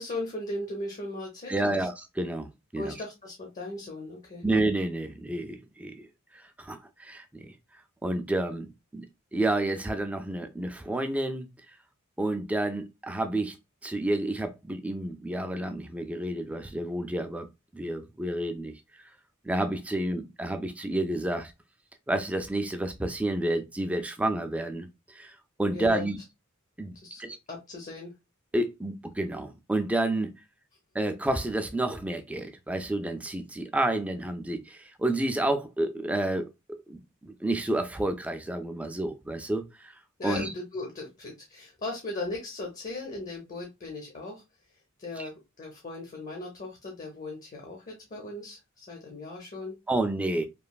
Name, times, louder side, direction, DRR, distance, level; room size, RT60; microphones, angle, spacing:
voice 1, 0.0-1.9 2.8-4.4 25.7-26.1 26.9-27.2 27.5-28.1 40.2-44.4 45.0-49.7, left 2 dB, 40° left, 0.7 m, -38 dB
voice 2, 1.5-2.9 4.4-6.1 6.6-7.4 8.0-9.0 9.3-11.5 12.2-13.6 13.8-17.5 17.7-18.7 19.4-21.5 22.1-25.3 25.6-26.2 26.8-27.4 28.5-30.3 30.9-36.5 36.9-39.9 40.2-40.5 45.2-45.3 49.9-50.5, right 1 dB, 5° right, 0.3 m, -30 dB
3.0 x 2.4 x 2.2 m
head